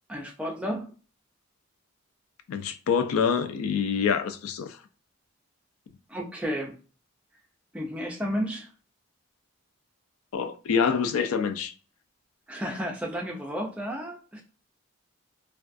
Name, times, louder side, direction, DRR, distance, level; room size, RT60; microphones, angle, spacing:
voice 1, 0.1-0.9 6.1-6.7 7.7-8.7 12.5-14.4, equal, 5° right, 0.4 m, -32 dB
voice 2, 2.5-4.8 10.3-11.7, left 6 dB, 80° left, 0.3 m, -26 dB
2.3 x 2.3 x 2.5 m
head